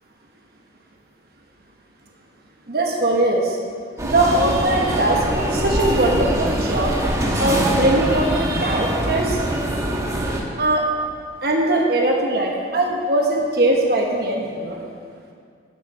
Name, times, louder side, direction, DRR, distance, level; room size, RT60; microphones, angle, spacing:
voice 1, 2.7-3.6 4.0-5.2 5.5-6.9 7.4-9.4 10.6-10.9 11.4-14.8, right 2 dB, 55° right, 0 dB, 1.1 m, -20 dB
sound 1, 4.0-10.4, right 1 dB, 15° right, 1.2 m, -23 dB
9.6 x 6.8 x 7.7 m, 2.1 s
head